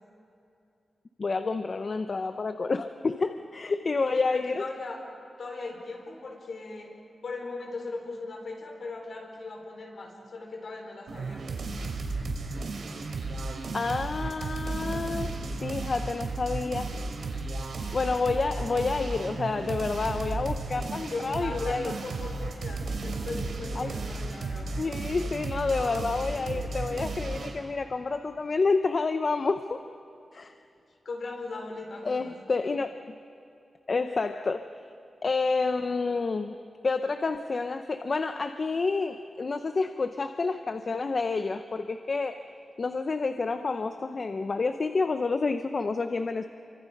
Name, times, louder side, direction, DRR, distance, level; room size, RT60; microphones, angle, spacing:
voice 1, 1.2-4.7 13.7-15.3 15.6-16.9 17.9-21.9 23.8-23.9 24.8-29.8 30.3-30.5 32.0-32.9 33.9-34.6 35.2-36.6 36.8-42.4 42.8-46.5, left 4 dB, 45° left, 8 dB, 0.7 m, -29 dB
voice 2, 4.1-5.0 5.4-6.9 7.2-11.4 21.0-25.1 31.0-32.3, left 3 dB, 60° left, 1 dB, 4.7 m, -39 dB
sound 1, 11.1-27.6, right 3 dB, 75° right, 3.1 m, -34 dB
29.5 x 24.5 x 5.4 m, 2.7 s
wide cardioid pair, 125°, 0 cm